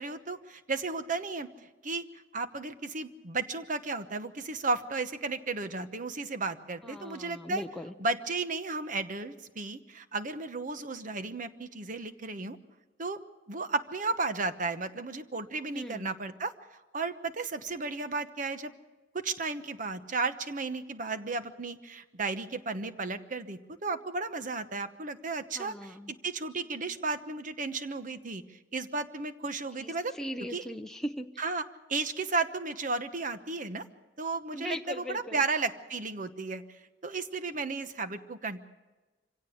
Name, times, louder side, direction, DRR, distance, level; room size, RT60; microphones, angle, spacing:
voice 1, 0.0-1.5 1.8-2.0 2.3-7.6 8.0-12.6 13.0-13.2 13.5-16.5 16.9-18.7 19.1-30.1 30.5-30.6 31.4-31.6 31.9-33.8 34.2-36.6 37.0-38.6, right 3 dB, 45° right, 10 dB, 1.1 m, -34 dB
voice 2, 6.8-7.9 15.7-16.1 25.5-26.1 29.8-31.3 34.5-35.4, equal, 5° left, 4 dB, 0.6 m, -39 dB
25.0 x 17.0 x 6.6 m, 1.2 s
head